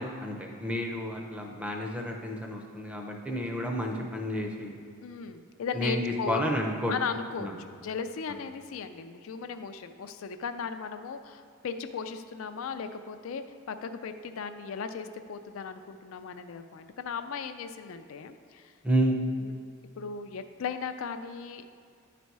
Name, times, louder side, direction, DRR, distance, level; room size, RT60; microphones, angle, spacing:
voice 1, 0.0-4.8 5.7-6.9 7.4-7.5 18.8-19.2, equal, 5° right, 1 dB, 0.6 m, -30 dB
voice 2, 5.0-6.4 6.9-18.7 19.4-19.5 20.0-21.6, left 6 dB, 70° left, 8 dB, 0.4 m, -37 dB
10.0 x 4.2 x 4.7 m, 2.3 s
head